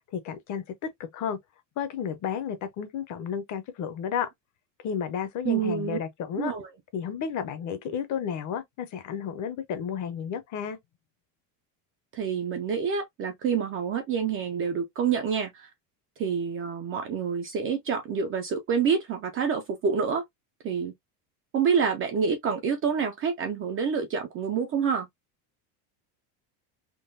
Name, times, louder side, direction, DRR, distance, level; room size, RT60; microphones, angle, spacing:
voice 1, 0.1-0.6 1.1-1.4 1.8-4.3 4.8-6.5 6.9-10.8, left 8 dB, 40° left, 0.7 m, -32 dB
voice 2, 5.4-6.0 6.4-6.7 12.1-15.7 16.2-20.2 20.6-20.9 21.5-25.1, right 6 dB, 30° right, 0.4 m, -27 dB
3.8 x 2.2 x 2.5 m
cardioid pair, 145°, 47 cm